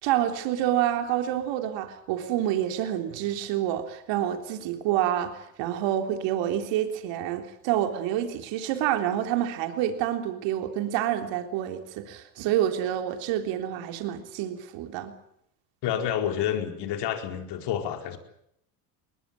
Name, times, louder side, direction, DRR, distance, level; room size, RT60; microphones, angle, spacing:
voice 1, 0.0-15.1, right 11 dB, 65° right, 6 dB, 3.7 m, -28 dB
voice 2, 15.8-18.2, left 9 dB, 60° left, 6 dB, 4.6 m, -29 dB
21.5 x 20.5 x 9.2 m, 0.74 s
supercardioid pair, 90°, 47 cm